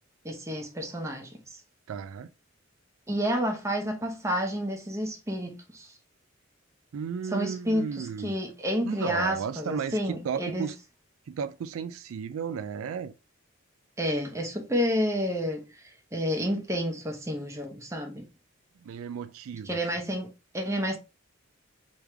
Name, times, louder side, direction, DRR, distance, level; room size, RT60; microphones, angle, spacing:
voice 1, 0.2-1.6 3.1-5.9 7.3-10.7 14.0-18.3 19.6-21.0, equal, 15° right, 0.8 m, -30 dB
voice 2, 1.9-2.3 6.9-8.4 8.8-10.8 11.3-13.1 18.8-19.8, right 6 dB, 80° right, 0.3 m, -34 dB
3.5 x 3.1 x 3.3 m
head